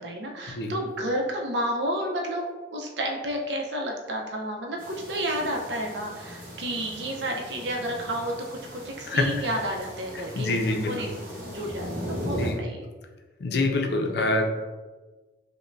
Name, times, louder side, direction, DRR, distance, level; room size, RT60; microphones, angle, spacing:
voice 1, 0.0-8.3 8.7-11.2 11.5-12.9, right 1 dB, 80° right, 0 dB, 0.6 m, -31 dB
sound 1, 4.8-12.5, equal, 50° right, 0.9 m, -38 dB
voice 2, 9.1-9.5 10.4-10.9 12.4-12.6 13.4-14.4, left 2 dB, 70° left, 3 dB, 0.4 m, -25 dB
5.3 x 2.1 x 2.5 m, 1.3 s
head